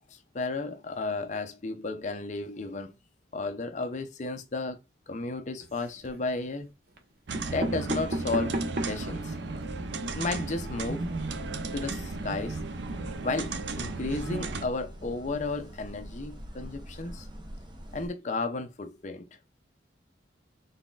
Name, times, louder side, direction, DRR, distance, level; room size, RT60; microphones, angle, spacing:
voice 1, 0.0-2.9 3.3-4.8 5.1-6.7 7.5-8.6 8.9-9.4 10.1-11.1 11.7-12.6 13.2-17.3 17.9-19.3, left 3 dB, 40° left, 0.5 m, -33 dB
sound 1, 5.6-6.2 7.0-7.1 7.3-9.1 9.6-9.7 9.9-10.0 10.3-10.5, right 1 dB, 50° right, 0.9 m, -33 dB
sound 2, 7.3-14.7, right 3 dB, 70° right, 0.5 m, -35 dB
sound 3, 10.0-18.1, equal, 25° right, 0.7 m, -44 dB
4.0 x 3.9 x 2.4 m
head